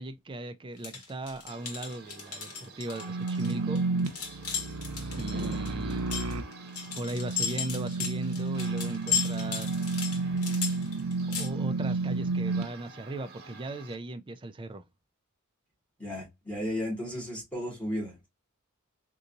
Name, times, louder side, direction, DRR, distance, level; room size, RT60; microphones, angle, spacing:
voice 1, 0.0-3.8 5.2-6.0 6.9-9.9 11.4-14.8, right 2 dB, 20° right, 0.4 m, -38 dB
sound 1, 0.8-11.5, left 6 dB, 90° left, 1.2 m, -35 dB
sound 2, 1.5-14.0, right 2 dB, 45° right, 0.9 m, -48 dB
sound 3, 3.0-12.6, right 3 dB, 75° right, 0.6 m, -31 dB
voice 2, 16.0-18.3, left 1 dB, 5° left, 2.0 m, -34 dB
3.9 x 2.7 x 2.5 m
head